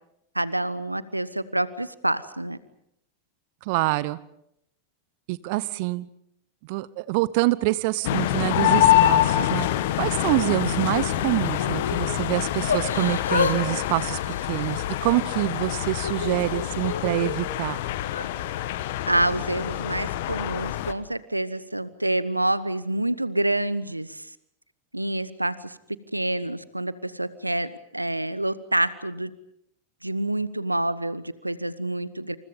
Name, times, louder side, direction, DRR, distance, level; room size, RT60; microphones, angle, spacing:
voice 1, 0.3-2.6 19.1-24.3 24.9-25.8 26.1-29.3 30.0-32.4, right 1 dB, 85° right, 17 dB, 1.0 m, -27 dB
voice 2, 3.6-4.2 5.3-6.1 6.6-9.7 10.0-17.8, right 20 dB, 45° right, 18 dB, 1.0 m, -26 dB
sound 1, 8.0-20.9, left 13 dB, 50° left, 1.6 m, -25 dB
Yell / Crying sobbing, 10.8-12.0 12.7-13.6 13.8-15.2 15.7-17.3 18.0-18.3, left 5 dB, 70° left, 3.2 m, -30 dB
28.5 x 28.0 x 5.4 m, 0.77 s
figure-of-eight pair, 90°, 0 cm